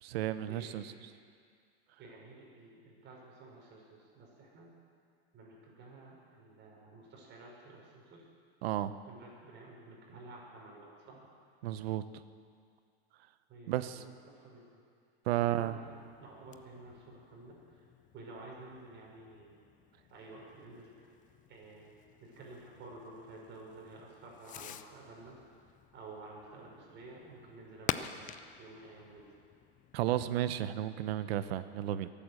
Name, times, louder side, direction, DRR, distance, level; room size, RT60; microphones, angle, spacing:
voice 1, 0.0-0.9 8.6-8.9 11.6-12.0 13.7-14.0 15.3-15.8 29.9-32.1, right 13 dB, 70° right, 13 dB, 0.9 m, -33 dB
voice 2, 2.0-4.7 5.3-8.2 9.0-11.3 13.5-14.6 15.3-17.6 18.1-19.6 20.1-21.1 21.5-21.9 22.4-25.4 25.9-28.2 28.6-29.3, right 2 dB, 35° right, -2 dB, 5.3 m, -51 dB
Fireworks, 15.8-30.4, left 11 dB, 25° left, 0.5 m, -47 dB
22.5 x 8.8 x 6.6 m, 2.2 s
supercardioid pair, 125°, 31 cm